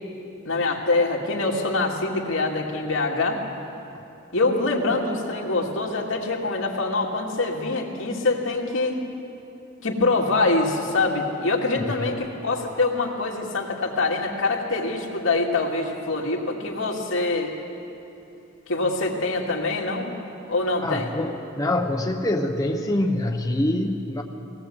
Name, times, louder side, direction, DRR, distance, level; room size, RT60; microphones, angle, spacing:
voice 1, 0.4-3.4 4.3-9.0 9.8-17.5 18.7-20.1 20.5-21.1, left 3 dB, 70° left, -1 dB, 2.5 m, -24 dB
voice 2, 20.8-24.2, left 1 dB, 15° left, 2 dB, 0.8 m, -25 dB
19.0 x 18.0 x 7.9 m, 2.8 s
head